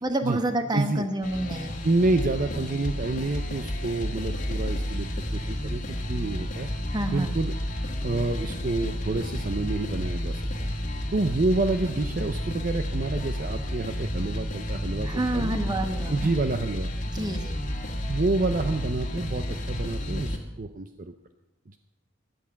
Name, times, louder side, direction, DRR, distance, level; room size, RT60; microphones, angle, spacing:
voice 1, 0.0-1.8 6.9-7.4 15.0-16.3 17.1-17.6, right 1 dB, 20° right, 7 dB, 1.2 m, -28 dB
voice 2, 0.7-1.1 1.8-5.8 6.1-6.7 7.1-7.6 8.0-10.5 11.1-15.5 16.0-16.9 18.1-21.1 21.7-21.8, right 2 dB, 45° right, 8 dB, 0.6 m, -28 dB
sound 1, 1.2-20.4, equal, 40° left, 1.9 m, -31 dB
16.0 x 11.0 x 5.8 m, 0.91 s
head